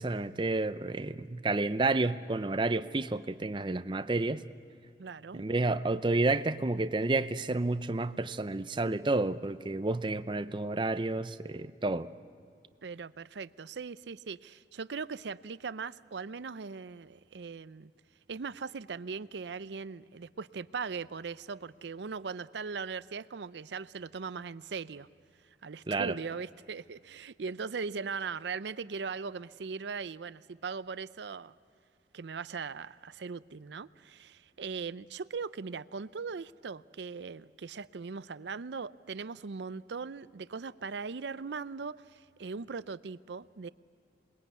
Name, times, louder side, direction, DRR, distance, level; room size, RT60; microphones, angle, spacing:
voice 1, 0.0-4.4 5.3-12.1 25.9-26.2, right 2 dB, 25° right, 0.6 m, -30 dB
voice 2, 5.0-5.4 12.8-17.9 18.3-25.1 25.6-31.5 32.1-43.7, right 5 dB, 75° right, 0.5 m, -39 dB
27.5 x 21.0 x 8.3 m
head